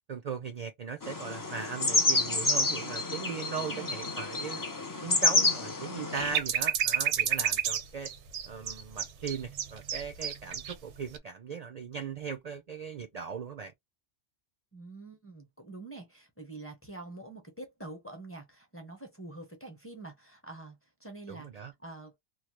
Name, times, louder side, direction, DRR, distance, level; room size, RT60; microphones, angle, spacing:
voice 1, 0.1-4.6 5.0-8.1 8.4-13.7 21.3-21.7, right 6 dB, 50° right, 0.5 m, -38 dB
sound 1, 1.0-6.4, left 2 dB, 30° left, 0.4 m, -29 dB
voice 2, 4.9-5.5 14.7-20.8 21.0-21.5 21.8-22.1, right 2 dB, 15° left, 0.8 m, -46 dB
sound 2, 6.1-10.7 11.1-11.2, right 9 dB, 85° right, 0.9 m, -30 dB
3.0 x 2.1 x 3.1 m
omnidirectional pair, 1.1 m